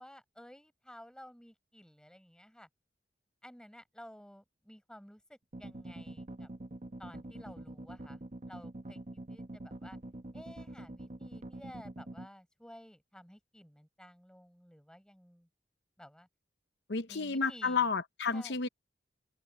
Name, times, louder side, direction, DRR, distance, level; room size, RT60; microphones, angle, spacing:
voice 1, 0.0-2.7 3.4-6.5 7.0-9.0 9.3-10.0 10.3-15.5 16.0-16.3 17.1-17.9 18.3-18.6, equal, 5° left, 4.8 m, -53 dB
sound 1, 5.5-12.3, right 1 dB, 40° right, 1.1 m, -45 dB
voice 2, 16.9-18.7, left 5 dB, 70° left, 0.8 m, -31 dB
head